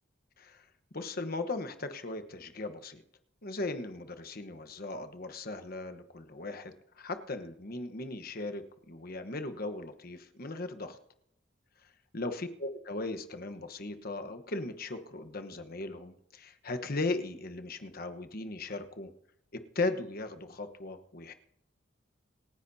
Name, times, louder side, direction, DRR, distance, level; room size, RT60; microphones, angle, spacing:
voice 1, 0.9-3.0 3.4-11.0 12.1-19.1 19.5-21.3, left 2 dB, 50° left, 8 dB, 1.2 m, -37 dB
27.0 x 10.0 x 2.8 m, 0.76 s
head